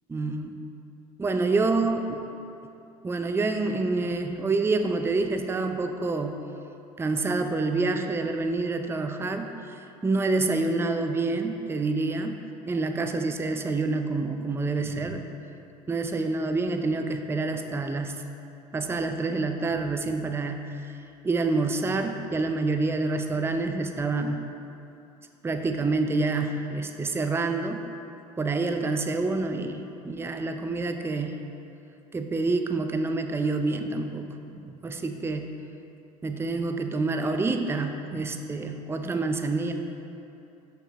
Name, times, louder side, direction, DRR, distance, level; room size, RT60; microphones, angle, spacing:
voice 1, 0.1-0.5 1.2-2.2 3.0-6.4 7.0-9.5 10.0-12.4 12.7-15.3 15.9-18.2 18.7-20.9 21.2-24.4 25.4-27.8 28.4-31.4 32.1-35.5 36.2-39.7, right 3 dB, 15° right, 6 dB, 0.5 m, -27 dB
6.8 x 5.9 x 4.1 m, 2.8 s
hypercardioid pair, 70°, 19 cm